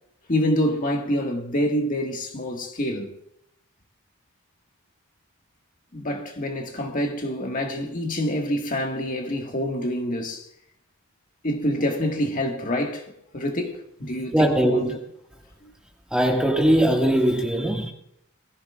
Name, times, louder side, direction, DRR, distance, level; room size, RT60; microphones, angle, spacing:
voice 1, 0.3-3.1 5.9-10.5 11.4-13.1 13.3-15.0, equal, 40° left, 1.7 m, -26 dB
voice 2, 14.1-15.0 16.1-17.9, right 1 dB, 5° right, 1.8 m, -21 dB
21.0 x 14.5 x 2.4 m
head